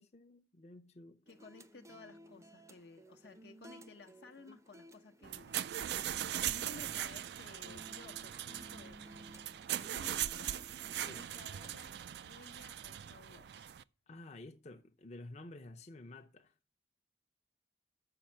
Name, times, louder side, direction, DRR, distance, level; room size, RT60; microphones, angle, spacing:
voice 1, 0.0-1.2 11.0-11.2 14.1-16.5, left 2 dB, 40° left, 0.7 m, -51 dB
voice 2, 1.3-5.7 5.9-9.1 9.7-10.7 11.1-13.8, left 3 dB, 70° left, 0.9 m, -56 dB
sound 1, 1.3-11.8, right 1 dB, 20° right, 0.6 m, -58 dB
sound 2, 5.2-13.8, right 11 dB, 65° right, 0.4 m, -40 dB
7.0 x 6.1 x 7.4 m
head